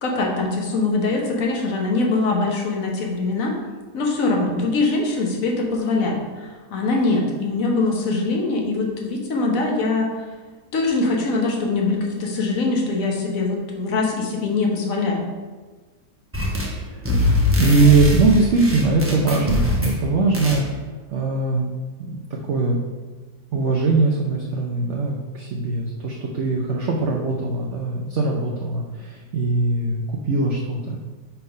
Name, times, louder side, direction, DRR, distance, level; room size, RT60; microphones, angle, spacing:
voice 1, 0.0-3.5 3.9-10.1 10.7-15.2, left 3 dB, 55° left, 0 dB, 1.4 m, -22 dB
sound 1, 16.3-16.8 17.0-20.0 20.3-20.6, left 2 dB, 10° right, 0.6 m, -22 dB
voice 2, 16.7-20.7 21.1-21.7 22.1-22.8 23.5-31.0, right 3 dB, 60° right, -1 dB, 0.8 m, -21 dB
5.8 x 3.5 x 5.3 m, 1.3 s
omnidirectional pair, 1.8 m